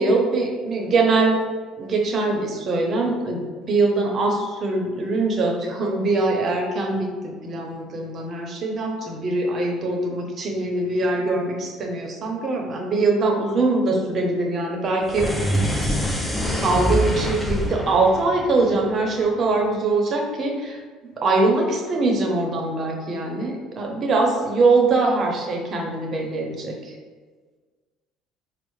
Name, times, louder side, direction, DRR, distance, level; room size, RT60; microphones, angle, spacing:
voice 1, 0.0-1.4 1.8-15.6 16.6-20.8 21.2-26.9, right 3 dB, 35° right, 0 dB, 0.6 m, -22 dB
sound 1, 15.0-19.4, equal, 5° left, 0.4 m, -25 dB
4.1 x 2.0 x 3.1 m, 1.4 s
cardioid pair, 135°, 0 cm